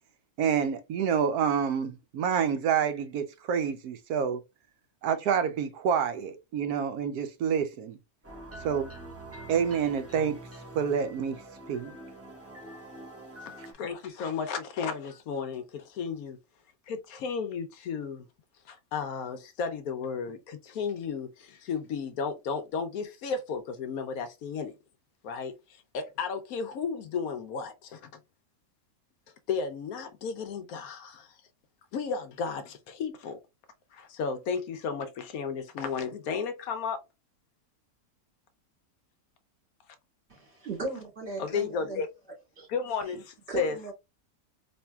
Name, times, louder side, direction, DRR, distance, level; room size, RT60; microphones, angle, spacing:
voice 1, 0.4-4.4 5.0-8.0 8.6-8.9 9.5-10.4 10.7-11.4 11.7-11.9, right 7 dB, 90° right, 1.2 m, -28 dB
sound 1, 8.2-13.7, right 2 dB, 10° right, 0.8 m, -45 dB
voice 2, 13.4-16.4 16.9-18.3 18.7-24.7 25.2-28.0 29.5-31.3 31.9-33.4 33.9-37.0 41.4-42.1 42.7-43.8, left 5 dB, 75° left, 1.1 m, -34 dB
voice 3, 40.3-42.0 42.6-42.7 43.1-43.2 43.5-43.9, right 2 dB, 45° right, 2.8 m, -36 dB
4.3 x 3.1 x 2.3 m
omnidirectional pair, 1.5 m